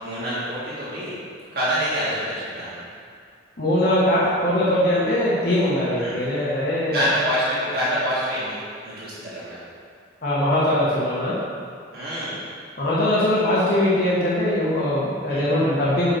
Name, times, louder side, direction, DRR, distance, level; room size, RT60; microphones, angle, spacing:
voice 1, 0.0-1.2 1.5-2.7 6.0-6.1 6.9-9.6 11.9-12.4 15.3-15.4, equal, 55° right, -10 dB, 1.8 m, -26 dB
voice 2, 3.6-7.1 10.2-11.4 12.8-16.1, left 1 dB, 55° left, -8 dB, 1.2 m, -21 dB
6.2 x 5.5 x 4.4 m, 2.2 s
head